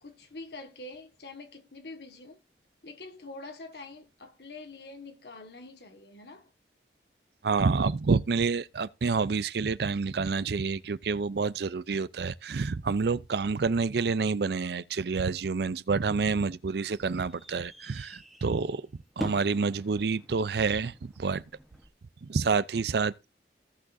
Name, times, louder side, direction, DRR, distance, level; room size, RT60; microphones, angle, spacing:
voice 1, 0.0-2.4 2.8-6.5, left 2 dB, 70° left, 1.6 m, -45 dB
voice 2, 7.4-18.8 19.2-21.4 22.2-23.3, right 4 dB, 70° right, 0.5 m, -28 dB
sound 1, 16.5-21.9, equal, ahead, 1.0 m, -45 dB
16.5 x 6.2 x 2.6 m
head